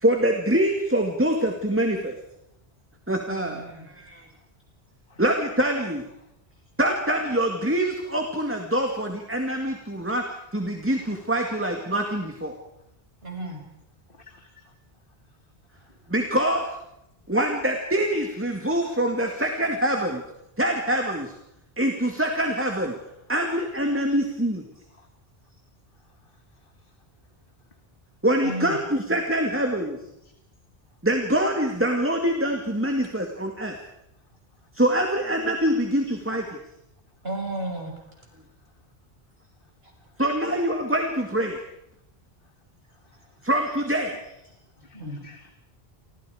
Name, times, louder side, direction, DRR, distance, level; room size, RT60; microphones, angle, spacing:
voice 1, 0.0-2.2 3.1-4.2 5.2-6.0 6.8-10.3 10.5-12.5 16.1-16.6 17.3-20.2 20.6-21.3 21.8-23.0 23.3-24.6 28.2-30.0 31.0-33.7 34.7-36.4 40.2-41.6 43.4-44.2, right 1 dB, 10° right, 3 dB, 2.2 m, -24 dB
voice 2, 3.3-3.9 13.2-13.6 28.4-28.8 36.1-36.2 37.2-37.9 44.9-45.2, right 1 dB, 75° right, 1 dB, 6.6 m, -33 dB
voice 3, 14.4-14.7 15.8-16.0 25.0-25.1 26.3-26.4 30.2-30.3 43.0-43.3 44.8-45.5, left 3 dB, 60° left, 4 dB, 2.1 m, -53 dB
29.5 x 25.5 x 5.0 m, 0.83 s
omnidirectional pair, 1.0 m